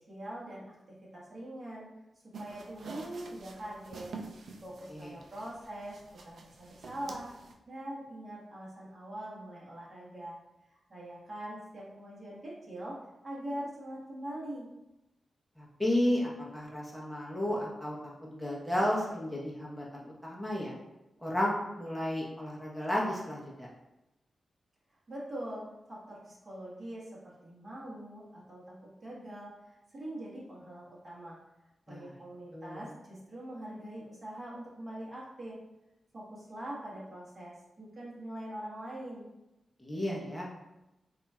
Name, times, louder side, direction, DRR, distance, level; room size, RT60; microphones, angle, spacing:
voice 1, 0.1-1.9 2.4-4.1 4.6-7.3 7.6-10.4 10.7-13.0 13.2-14.7 25.1-31.4 31.9-35.6 36.1-39.3, right 1 dB, 45° right, -7 dB, 1.5 m, -43 dB
sound 1, 2.3-7.5, right 3 dB, 80° right, 0.4 m, -48 dB
voice 2, 15.6-20.7 21.2-23.7 31.9-32.1 32.5-32.8 39.8-40.5, left 1 dB, 5° left, -4 dB, 1.0 m, -33 dB
4.1 x 2.8 x 2.4 m, 0.95 s
cardioid pair, 75°, 0 cm